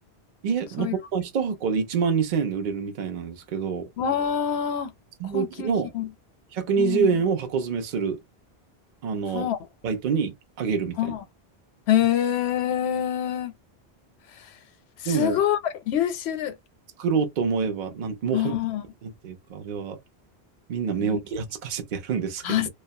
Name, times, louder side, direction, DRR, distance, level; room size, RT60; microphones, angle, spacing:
voice 1, 0.4-3.9 5.2-5.9 6.5-8.2 9.0-9.5 9.8-11.1 15.0-15.4 17.0-18.6 19.0-20.0 20.7-22.7, right 6 dB, 55° right, 0.7 m, -26 dB
voice 2, 4.0-4.9 5.2-6.1 6.8-7.1 9.3-9.6 11.0-11.2 11.9-13.5 14.4-14.5 15.0-16.5 18.3-18.8 21.0-21.2 22.4-22.7, left 10 dB, 80° left, 0.8 m, -25 dB
2.3 x 2.1 x 2.6 m
omnidirectional pair, 1.1 m